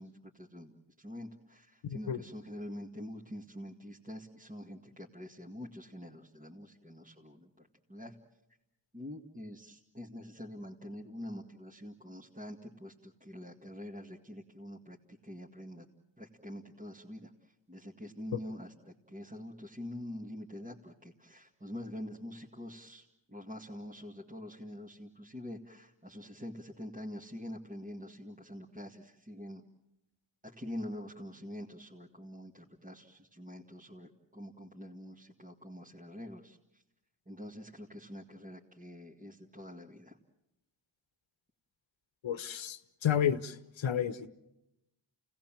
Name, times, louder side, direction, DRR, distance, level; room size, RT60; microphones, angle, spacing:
voice 1, 0.0-8.2 8.9-15.9 16.2-29.6 30.4-36.8 37.3-40.2, left 1 dB, 15° right, -2 dB, 2.0 m, -46 dB
voice 2, 1.8-2.2 42.2-44.3, left 9 dB, 75° left, 13 dB, 1.2 m, -31 dB
29.0 x 18.0 x 7.5 m, 0.92 s
cardioid pair, 65°, 47 cm